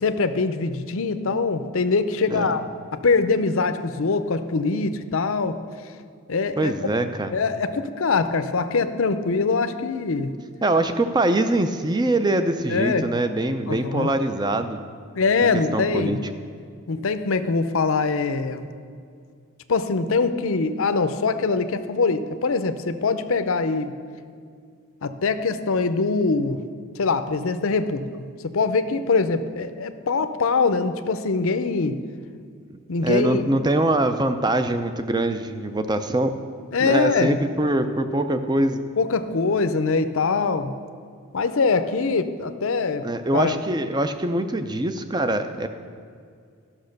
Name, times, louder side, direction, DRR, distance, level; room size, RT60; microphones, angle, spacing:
voice 1, 0.0-2.6 2.9-5.6 6.3-6.9 7.3-10.4 12.7-13.1 13.7-14.1 15.2-16.2 16.9-18.7 19.7-23.9 25.0-26.6 27.0-32.0 32.9-33.5 36.7-37.4 39.0-40.7 41.3-43.0 43.3-43.5, left 4 dB, 65° left, 10 dB, 0.6 m, -23 dB
voice 2, 6.6-7.3 10.6-14.8 15.5-16.3 33.0-36.3 36.8-38.9 43.0-45.7, right 1 dB, 20° right, 9 dB, 0.5 m, -23 dB
12.5 x 6.0 x 6.5 m, 2.2 s
head